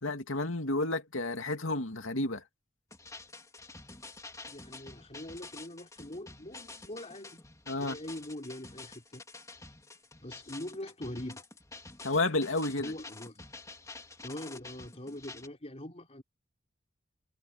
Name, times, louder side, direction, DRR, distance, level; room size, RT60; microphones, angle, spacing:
voice 1, 0.0-2.4 7.7-8.0 12.0-12.9, left 2 dB, 90° left, 2.5 m, -31 dB
sound 1, 2.9-15.5, left 3 dB, 15° left, 3.5 m, -49 dB
voice 2, 4.5-7.4 7.8-9.2 9.5-9.7 10.2-11.5 12.8-13.5 13.9-16.2, left 1 dB, 35° left, 4.0 m, -43 dB
head